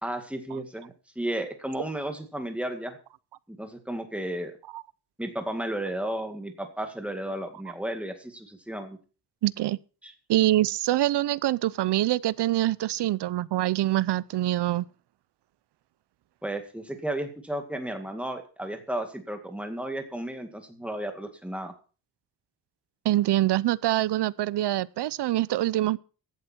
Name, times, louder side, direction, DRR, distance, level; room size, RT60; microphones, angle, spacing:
voice 1, 0.0-3.0 3.5-4.5 5.2-9.0 10.0-10.1 16.4-21.7, right 1 dB, 5° right, 2.0 m, -33 dB
voice 2, 9.4-9.8 10.3-14.9 23.0-26.0, right 15 dB, 85° right, 0.7 m, -25 dB
16.0 x 11.0 x 4.4 m
wide cardioid pair, 165°, 40 cm